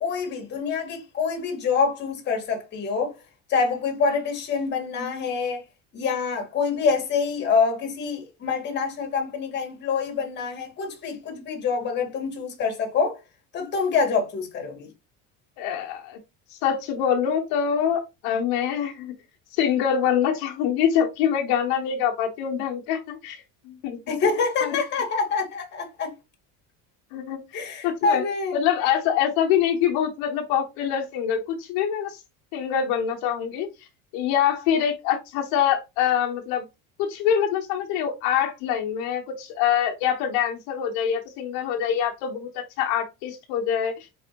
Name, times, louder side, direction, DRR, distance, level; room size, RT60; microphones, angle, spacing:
voice 1, 0.0-3.1 3.5-5.6 5.9-13.2 13.5-14.9 24.1-26.1 27.5-28.6, left 5 dB, 30° left, 1.5 m, -26 dB
voice 2, 15.6-16.2 16.5-19.1 19.6-24.0 24.6-24.8 27.1-28.2 28.5-32.2 32.5-33.7 34.1-36.7 37.0-43.9, left 8 dB, 70° left, 1.0 m, -25 dB
4.3 x 4.1 x 2.8 m
cardioid pair, 160°, 37 cm